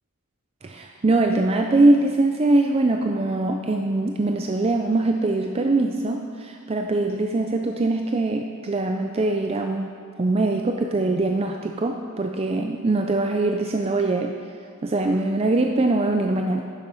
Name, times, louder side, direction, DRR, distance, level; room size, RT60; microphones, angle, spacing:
voice 1, 0.6-9.9 10.2-14.3 14.8-16.6, right 2 dB, 25° right, 3 dB, 0.4 m, -22 dB
10.0 x 7.2 x 5.3 m, 2.5 s
head